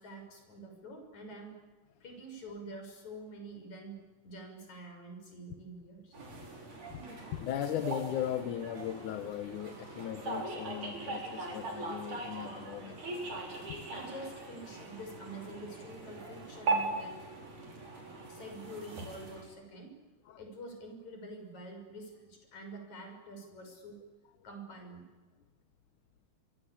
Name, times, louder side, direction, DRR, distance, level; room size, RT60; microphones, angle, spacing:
voice 1, 0.0-1.6 2.0-4.0 4.2-6.2 13.9-17.2 18.3-19.9 20.4-24.0 24.4-25.0, right 1 dB, 70° left, 4 dB, 7.9 m, -47 dB
sound 1, 6.1-19.4, right 3 dB, 90° right, 7.1 m, -40 dB
voice 2, 7.3-13.0, left 10 dB, 90° left, 9 dB, 2.8 m, -37 dB
27.5 x 24.5 x 8.8 m, 1.2 s
omnidirectional pair, 3.4 m